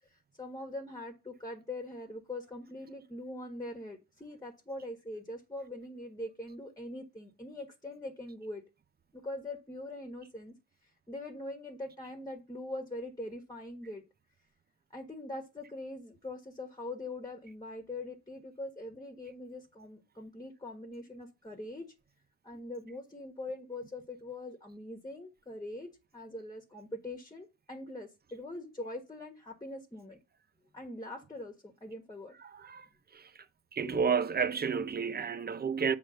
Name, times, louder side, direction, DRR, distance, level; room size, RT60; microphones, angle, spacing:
voice 1, 0.1-8.6 9.1-10.5 10.8-14.0 14.9-21.8 22.4-30.2 30.7-32.3 33.8-34.1, left 1 dB, 10° left, 1.5 m, -42 dB
voice 2, 32.4-32.9 33.1-33.3 33.7-36.0, right 6 dB, 30° right, 0.7 m, -31 dB
8.2 x 3.3 x 6.4 m
cardioid pair, 90°, 30 cm